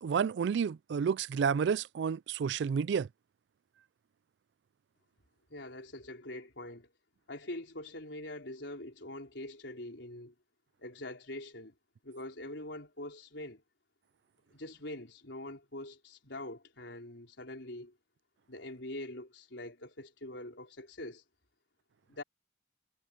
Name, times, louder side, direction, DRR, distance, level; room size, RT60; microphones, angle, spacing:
voice 1, 0.0-3.1, right 6 dB, 65° right, 0.3 m, -30 dB
voice 2, 5.5-6.9 7.3-10.3 10.8-11.7 12.0-13.6 14.5-17.9 18.5-21.2 22.1-22.2, left 1 dB, 70° left, 4.6 m, -44 dB
head